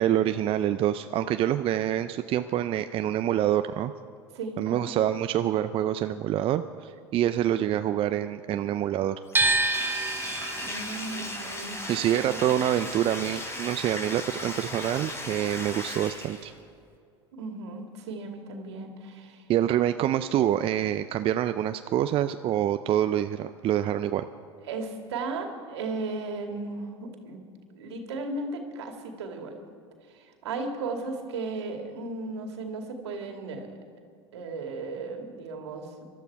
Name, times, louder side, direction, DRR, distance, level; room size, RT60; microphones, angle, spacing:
voice 1, 0.0-3.9 4.6-9.2 11.9-16.5 19.5-24.2, right 11 dB, 40° right, 10 dB, 0.5 m, -26 dB
voice 2, 4.3-4.9 10.6-11.8 12.2-12.4 17.3-19.4 23.8-23.9 24.7-27.4 27.7-29.6 30.1-33.7 34.3-36.1, right 3 dB, 75° right, 4 dB, 2.3 m, -35 dB
Bathtub (filling or washing), 9.3-16.6, left 1 dB, 20° left, 3.8 m, -36 dB
sound 1, 9.3-15.4 15.6-16.9, right 3 dB, 15° right, 1.1 m, -30 dB
24.5 x 12.5 x 4.7 m, 2.4 s
hypercardioid pair, 80°, 14 cm